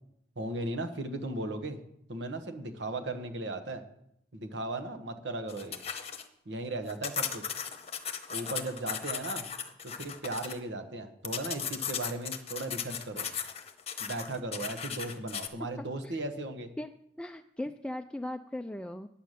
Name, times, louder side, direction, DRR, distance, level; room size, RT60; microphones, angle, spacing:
voice 1, 0.4-1.8 2.1-3.8 4.3-5.8 6.4-7.4 8.3-9.5 9.8-13.3 14.0-16.7, right 2 dB, 80° right, 7 dB, 1.3 m, -36 dB
sound 1, 5.5-6.2 6.9-10.6 11.2-15.5, left 7 dB, 35° left, 0.9 m, -37 dB
voice 2, 15.8-16.2 16.8-16.9 17.2-19.1, left 1 dB, 5° left, 6 dB, 0.3 m, -38 dB
9.2 x 9.2 x 6.6 m, 0.75 s
head